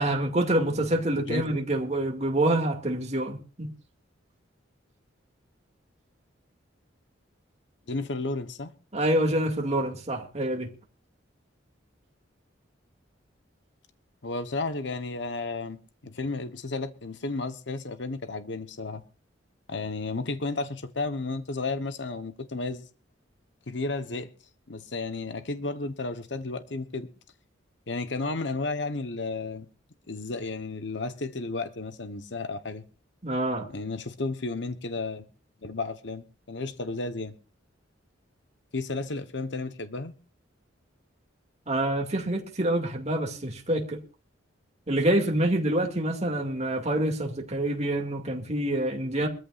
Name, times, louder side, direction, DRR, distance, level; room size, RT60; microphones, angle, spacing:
voice 1, 0.0-3.7 8.9-10.7 33.2-33.7 41.7-44.0 44.9-49.3, right 1 dB, 35° right, 2.3 m, -26 dB
voice 2, 7.9-8.7 14.2-15.8 16.0-19.0 19.7-22.8 23.7-24.3 24.7-27.1 27.9-29.7 30.1-32.8 33.7-35.2 35.6-37.3 38.7-40.1, left 3 dB, 65° left, 1.1 m, -33 dB
23.0 x 14.0 x 2.5 m
head